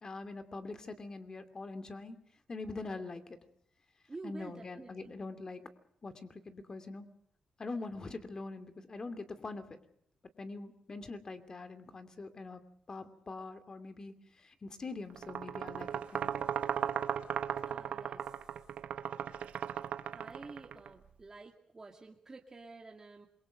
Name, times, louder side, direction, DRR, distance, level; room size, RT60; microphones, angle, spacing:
voice 1, 0.0-2.2 2.5-3.4 4.2-5.6 6.0-7.1 7.6-9.8 10.4-12.6 12.9-16.3, left 3 dB, 35° left, 9 dB, 2.7 m, -43 dB
voice 2, 4.1-5.1 17.7-18.5 20.1-23.3, right 3 dB, 25° right, 1 dB, 2.1 m, -50 dB
sound 1, 15.2-20.9, right 9 dB, 90° right, 1.3 m, -36 dB
27.5 x 23.0 x 5.1 m, 0.67 s
wide cardioid pair, 120°, 2 cm